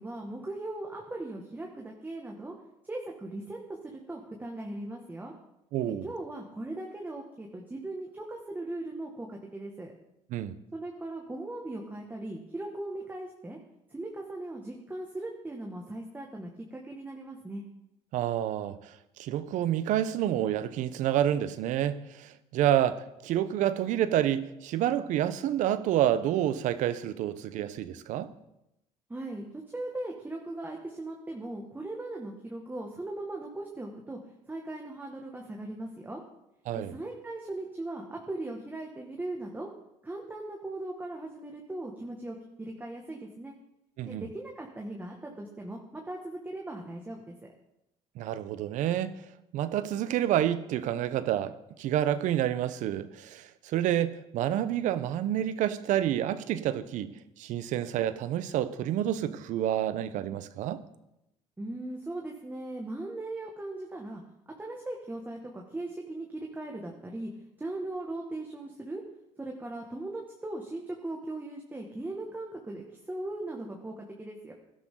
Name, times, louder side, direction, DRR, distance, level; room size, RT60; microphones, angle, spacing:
voice 1, 0.0-2.5 2.9-3.6 3.8-5.3 5.9-9.9 10.7-13.6 13.9-17.6 29.1-29.5 29.7-34.2 34.5-36.2 36.7-39.7 40.0-43.5 44.1-47.5 61.6-64.2 64.5-67.3 67.6-69.0 69.4-74.5, right 2 dB, 15° right, 1.9 m, -39 dB
voice 2, 5.7-6.1 10.3-10.6 18.1-28.3 36.7-36.9 44.0-44.2 48.2-49.1 49.5-60.8, right 11 dB, 70° right, 0.9 m, -29 dB
17.0 x 12.0 x 3.9 m
supercardioid pair, 90°, 13 cm